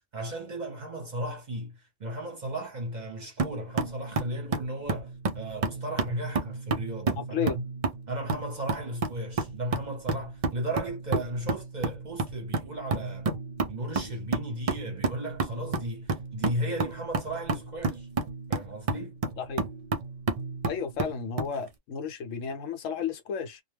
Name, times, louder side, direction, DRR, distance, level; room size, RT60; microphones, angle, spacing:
voice 1, 0.1-7.5 8.1-13.3 13.7-18.1 18.5-19.2, right 1 dB, 45° right, 0.7 m, -35 dB
sound 1, 3.4-21.6, right 3 dB, 65° right, 0.3 m, -31 dB
voice 2, 7.2-7.6 19.4-19.7 20.6-23.6, left 7 dB, 75° left, 1.0 m, -33 dB
2.2 x 2.2 x 3.2 m
omnidirectional pair, 1.3 m